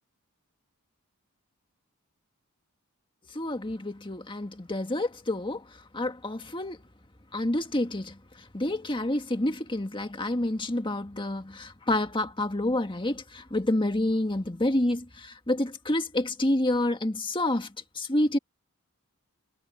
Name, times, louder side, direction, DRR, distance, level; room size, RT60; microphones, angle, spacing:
voice 1, 3.3-5.6 5.9-6.8 7.3-8.1 8.5-17.7 17.9-18.4, left 1 dB, 25° left, 1.7 m, -28 dB
head